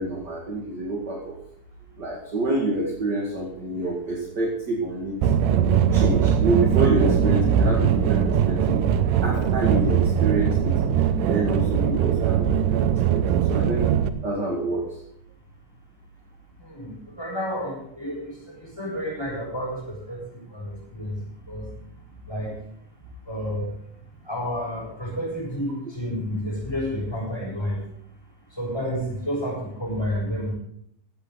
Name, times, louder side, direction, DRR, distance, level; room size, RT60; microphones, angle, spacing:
voice 1, 0.0-1.4 2.0-5.1 5.6-8.8 9.2-13.9 14.2-15.0, right 2 dB, 35° right, -1 dB, 2.3 m, -27 dB
sound 1, 5.2-14.1, right 8 dB, 75° right, 2.4 m, -21 dB
voice 2, 16.6-21.2 21.5-21.7 22.3-22.5 23.3-23.7 24.3-27.8 28.6-30.5, equal, 5° left, -4 dB, 7.5 m, -30 dB
16.0 x 13.5 x 4.0 m, 0.70 s
omnidirectional pair, 4.0 m